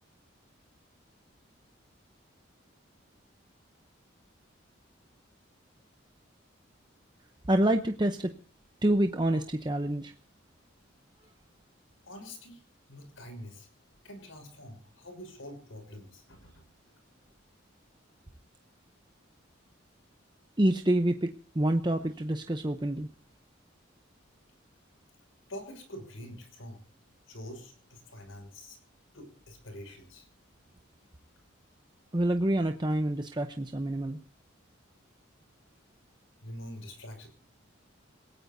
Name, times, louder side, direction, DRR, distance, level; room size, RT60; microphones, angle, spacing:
voice 1, 7.5-8.3 8.8-10.1 20.6-23.1 32.1-34.2, right 1 dB, 20° right, 6 dB, 0.7 m, -27 dB
voice 2, 12.0-12.6 12.9-13.7 14.0-16.7 25.5-26.8 27.3-28.8 29.1-30.3 36.4-37.3, left 1 dB, 85° left, 7 dB, 6.2 m, -45 dB
28.0 x 17.0 x 2.7 m, 0.40 s
head